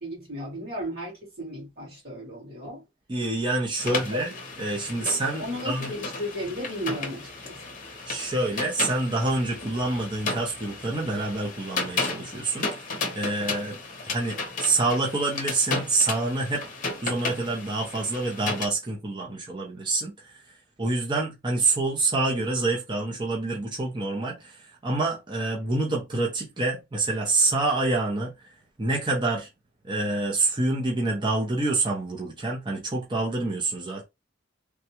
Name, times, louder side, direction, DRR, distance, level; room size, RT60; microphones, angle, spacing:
voice 1, 0.0-2.8 3.8-4.2 4.9-7.8, equal, 55° right, 2.0 m, -35 dB
voice 2, 3.1-4.3 4.6-5.9 8.1-12.7 13.2-13.7 14.0-16.6 17.0-20.4 20.8-28.5 28.8-29.5 29.8-34.0, right 2 dB, 25° right, 0.7 m, -27 dB
sound 1, 3.8-18.7, left 3 dB, 40° left, 0.9 m, -34 dB
3.3 x 2.3 x 2.9 m
head